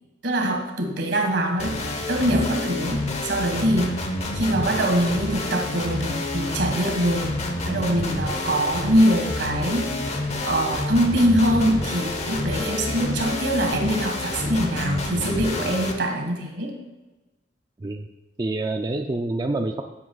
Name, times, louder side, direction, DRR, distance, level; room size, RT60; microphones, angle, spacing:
voice 1, 0.2-1.8 2.1-3.9 4.3-7.4 7.6-9.9 10.4-16.7, right 1 dB, 75° right, 3 dB, 1.7 m, -23 dB
sound 1, 1.6-15.9, left 2 dB, 35° left, 1.0 m, -28 dB
voice 2, 18.4-19.8, right 2 dB, 25° right, 5 dB, 0.4 m, -27 dB
13.5 x 7.5 x 2.3 m, 1.1 s
head